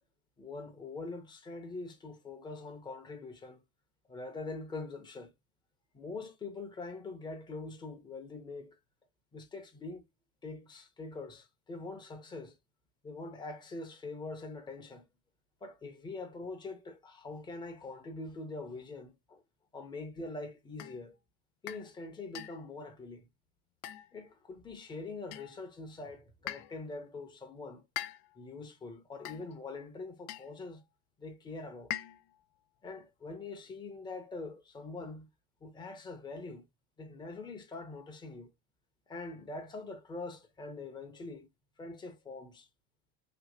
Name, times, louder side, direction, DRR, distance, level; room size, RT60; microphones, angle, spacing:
voice 1, 0.4-3.6 4.1-5.3 5.9-8.8 9.3-10.0 10.4-12.5 13.0-15.1 15.6-19.4 19.7-21.2 21.6-23.3 24.1-27.8 28.4-30.8 31.2-31.9 32.8-35.3 35.6-36.7 37.0-38.5 39.1-41.5 41.8-42.7, left 3 dB, 15° left, 0.9 m, -43 dB
sound 1, 20.8-21.0 21.7-21.9 22.3-22.7 23.8-24.3 25.3-25.7 26.5-26.8 28.0-28.5 29.2-29.6 30.3-30.6 31.9-32.4, left 13 dB, 70° left, 0.5 m, -42 dB
3.1 x 2.8 x 2.8 m
supercardioid pair, 140°, 30 cm